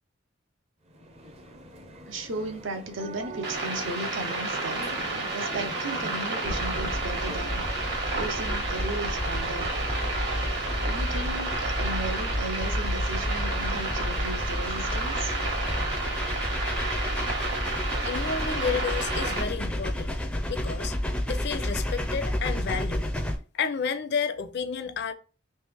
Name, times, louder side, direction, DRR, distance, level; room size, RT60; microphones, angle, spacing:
sound 1, 0.9-11.7, right 1 dB, 35° right, 0.6 m, -43 dB
voice 1, 2.1-7.6 8.1-9.7 10.3-15.3, right 2 dB, 75° right, 0.8 m, -36 dB
sound 2, 3.4-19.4, right 2 dB, 60° right, 1.3 m, -31 dB
sound 3, 6.4-23.4, left 1 dB, 5° left, 0.4 m, -31 dB
voice 2, 18.1-20.2 20.5-20.9 21.3-23.1 23.5-25.1, left 6 dB, 60° left, 0.5 m, -31 dB
3.3 x 2.8 x 3.4 m
head